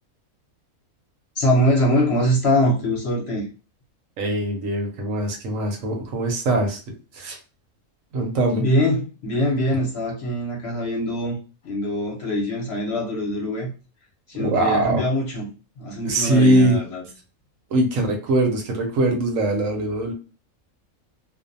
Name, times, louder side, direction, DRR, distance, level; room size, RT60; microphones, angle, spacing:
voice 1, 1.4-3.4 8.6-11.4 11.6-13.7 14.3-15.5 15.8-17.0, equal, 55° left, -1 dB, 0.9 m, -23 dB
voice 2, 4.2-6.8 7.1-7.4 8.1-8.6 14.4-15.0 16.1-16.8 17.7-20.1, right 1 dB, 70° right, 3 dB, 1.0 m, -21 dB
2.5 x 2.1 x 2.5 m, 0.35 s
omnidirectional pair, 1.5 m